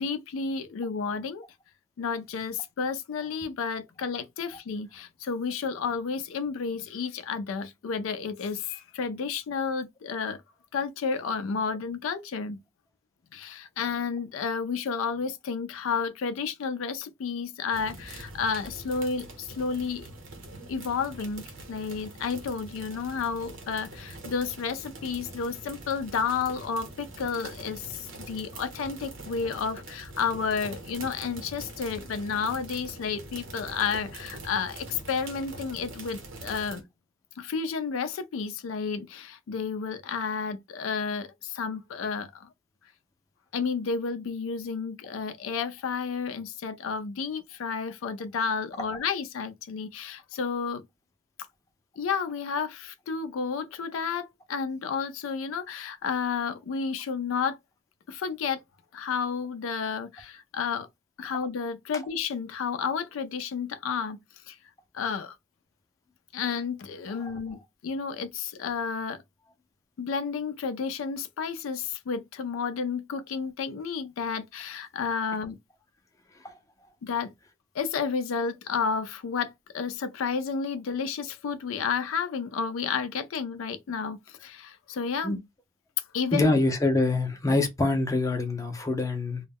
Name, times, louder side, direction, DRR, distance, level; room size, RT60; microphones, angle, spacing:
voice 1, 0.0-1.4 2.0-10.4 10.7-12.6 13.3-20.1 20.7-36.8 37.4-42.5 43.5-50.9 52.0-57.6 58.1-58.6 58.9-60.9 61.2-64.2 64.5-64.6 64.9-65.4 66.3-69.2 70.0-75.6 77.0-77.3 77.7-85.4 86.1-86.5, left 5 dB, 90° left, 0.4 m, -31 dB
sound 1, 17.7-36.8, right 2 dB, 75° right, 0.9 m, -44 dB
voice 2, 86.3-89.4, left 2 dB, 15° left, 0.5 m, -25 dB
2.2 x 2.0 x 3.4 m
head